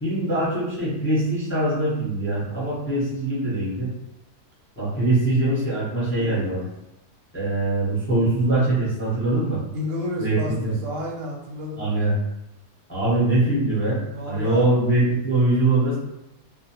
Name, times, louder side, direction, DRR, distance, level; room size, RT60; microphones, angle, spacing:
voice 1, 0.0-3.9 4.8-6.6 7.3-9.6 10.2-10.7 11.8-12.2 12.9-14.0 14.3-15.9, right 2 dB, 10° left, -8 dB, 0.6 m, -22 dB
voice 2, 9.7-12.1 14.1-14.6, left 1 dB, 60° right, -2 dB, 1.0 m, -31 dB
2.4 x 2.1 x 2.9 m, 0.88 s
omnidirectional pair, 1.6 m